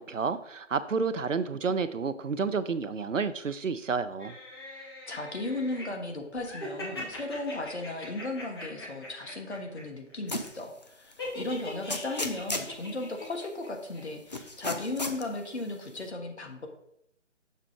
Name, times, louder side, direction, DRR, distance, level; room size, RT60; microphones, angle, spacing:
voice 1, 0.0-4.4, right 5 dB, 85° right, 13 dB, 0.6 m, -30 dB
sound 1, 4.2-5.8 6.4-9.8 10.1-10.5 11.2-13.7 13.9-14.0, left 1 dB, 20° left, 1.1 m, -42 dB
voice 2, 4.7-16.7, left 2 dB, 60° left, 3 dB, 1.3 m, -36 dB
sound 2, 10.3-10.6 11.1-11.2 11.9-12.7 14.3-15.2, left 2 dB, 35° left, 0.5 m, -33 dB
6.6 x 3.6 x 4.9 m, 0.76 s
figure-of-eight pair, 150°, 37 cm